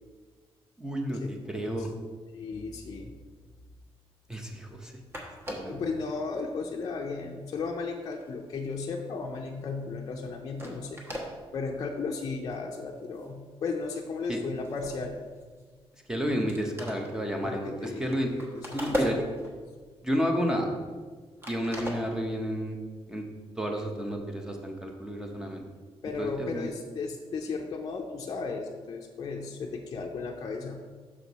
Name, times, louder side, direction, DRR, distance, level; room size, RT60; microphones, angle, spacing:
voice 1, 0.8-1.9 4.3-4.9 5.5-5.7 14.3-14.4 16.1-18.3 18.7-19.2 20.0-20.7 21.5-22.8 23.1-23.2 23.6-25.6 26.2-26.7, equal, 5° right, 2 dB, 0.7 m, -31 dB
voice 2, 1.6-1.9 2.3-3.1 5.7-11.0 11.5-15.1 17.4-19.2 26.0-30.8, left 4 dB, 40° left, 0 dB, 0.5 m, -35 dB
sound 1, 5.1-5.8 6.5-6.6 7.0-9.4 9.7-9.9 10.3-10.4 10.6-11.3 11.9-12.0 12.4-12.6 13.0-13.4 13.6-15.9 16.2-16.3 16.5-19.7 20.1-21.1 21.4-22.5, equal, 25° right, 1.1 m, -38 dB
6.4 x 6.0 x 4.0 m, 1.5 s
wide cardioid pair, 175°, 10 cm